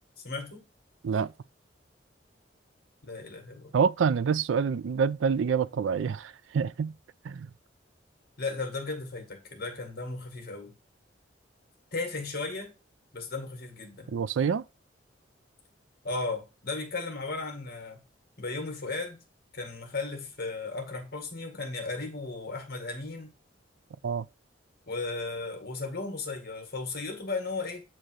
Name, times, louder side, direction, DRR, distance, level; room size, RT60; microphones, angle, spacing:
voice 1, 0.2-0.7 3.0-3.7 8.4-10.7 11.9-12.7 13.1-14.1 16.0-18.0 18.4-19.2 19.5-23.3 24.9-27.8, left 3 dB, 55° left, 2.0 m, -35 dB
voice 2, 3.7-6.9 7.2-7.5 14.1-14.6 24.0-24.2, right 6 dB, 85° right, 0.4 m, -27 dB
8.9 x 3.0 x 6.2 m
head